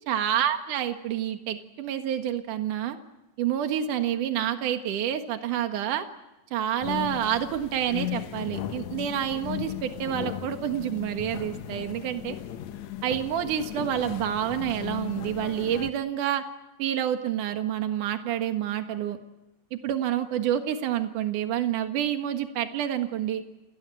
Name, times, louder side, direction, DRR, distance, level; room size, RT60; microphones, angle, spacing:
voice 1, 0.1-3.0 3.4-6.1 6.5-12.4 13.0-16.4 16.8-19.2 19.7-23.4, right 10 dB, 70° right, 7 dB, 3.1 m, -28 dB
sound 1, 6.8-15.9, left 11 dB, 65° left, 2.2 m, -36 dB
30.0 x 19.0 x 9.0 m, 0.95 s
omnidirectional pair, 3.8 m